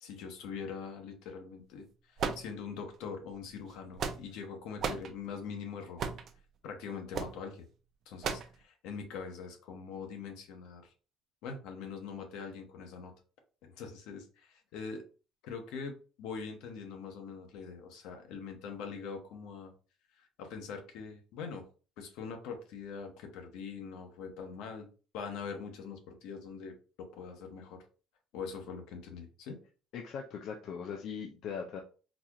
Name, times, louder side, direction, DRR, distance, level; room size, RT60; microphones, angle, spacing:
voice 1, 0.0-6.0 6.6-7.7 8.1-10.9 11.4-13.1 13.6-15.0 15.4-19.7 20.1-21.7 22.0-24.9 25.1-27.8 28.3-29.6, left 5 dB, 75° left, 4 dB, 0.9 m, -43 dB
sound 1, 2.2-3.0 3.7-4.4 4.8-5.1 6.0-6.3 7.1-7.4 8.2-8.6, right 6 dB, 40° right, 0.4 m, -35 dB
voice 2, 29.9-31.8, left 6 dB, 50° left, 2 dB, 0.4 m, -40 dB
4.0 x 2.4 x 2.9 m, 0.36 s
cardioid pair, 175°, 0 cm